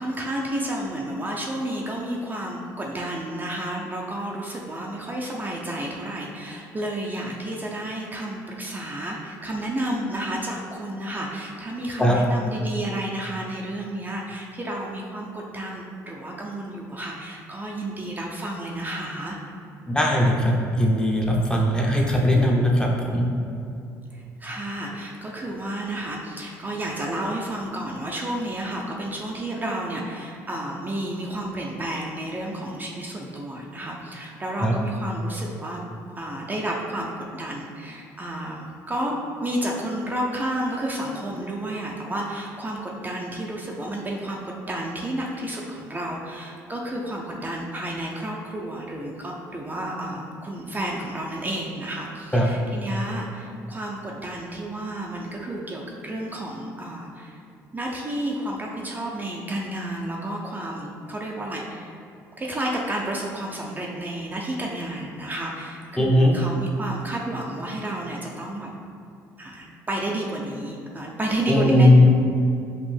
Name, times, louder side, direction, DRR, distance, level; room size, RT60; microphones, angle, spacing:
voice 1, 0.0-19.4 24.1-35.8 36.2-57.4 57.7-62.0 62.4-68.7 69.4-72.1, right 1 dB, 25° right, -2 dB, 0.5 m, -31 dB
voice 2, 19.9-23.3 34.6-34.7 52.3-52.5 66.0-66.3 71.5-72.1, left 1 dB, 10° left, -2 dB, 0.7 m, -19 dB
5.2 x 2.5 x 3.4 m, 2.6 s
supercardioid pair, 80°, 8 cm